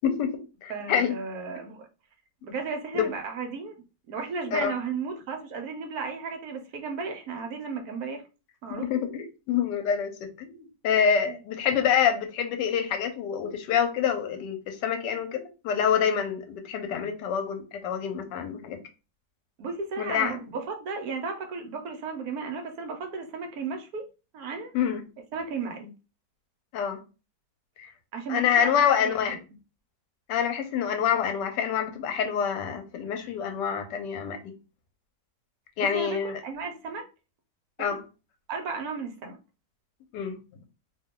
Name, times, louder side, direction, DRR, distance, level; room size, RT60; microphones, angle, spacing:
voice 1, 0.0-1.1 2.9-3.1 4.5-4.7 8.8-10.6 10.8-18.8 20.0-20.4 24.7-25.0 26.7-27.0 27.8-27.9 28.3-29.4 30.3-34.5 35.8-36.3 37.8-38.0 40.1-40.4, left 8 dB, 85° left, 1.3 m, -26 dB
voice 2, 0.7-1.9 2.4-3.8 4.1-8.2 8.6-8.9 11.3-11.4 19.6-24.0 24.3-24.7 25.3-25.9 28.1-29.4 35.8-37.1 37.8-37.9 38.5-39.4, right 4 dB, 70° right, 1.0 m, -34 dB
2.9 x 2.2 x 3.6 m
omnidirectional pair, 1.8 m